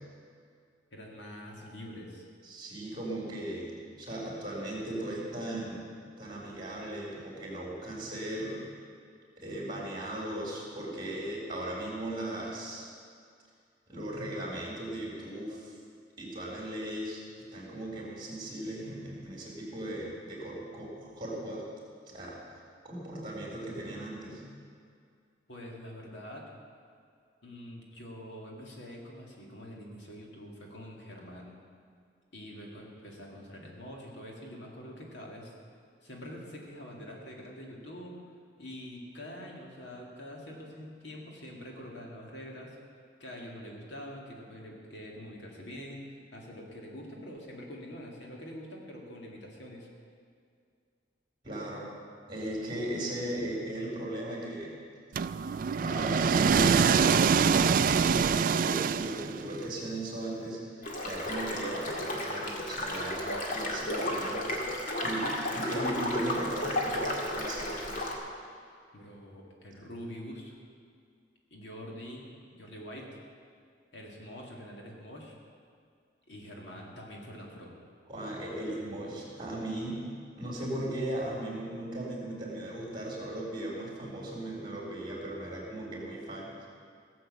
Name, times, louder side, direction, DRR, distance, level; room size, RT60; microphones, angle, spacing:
voice 1, 0.9-2.2 25.5-26.5 27.4-31.6 32.3-35.5 36.0-38.1 38.6-42.8 43.2-46.0 46.3-49.9 68.9-70.6 71.5-73.2 73.9-75.3 76.3-77.7, equal, 65° left, -1 dB, 2.2 m, -45 dB
voice 2, 2.4-5.9 6.2-8.6 9.4-12.9 13.9-15.8 16.2-17.2 17.5-21.6 22.1-22.4 22.8-24.4 51.4-52.0 52.3-54.8 55.8-60.6 61.0-64.6 65.0-68.0 78.1-80.0 80.4-86.7, right 1 dB, 25° right, -3 dB, 3.7 m, -37 dB
sound 1, 55.2-59.6, right 6 dB, 45° right, 0.3 m, -25 dB
sound 2, 60.8-68.1, left 1 dB, 45° left, 1.9 m, -33 dB
16.5 x 7.7 x 7.3 m, 2.3 s
head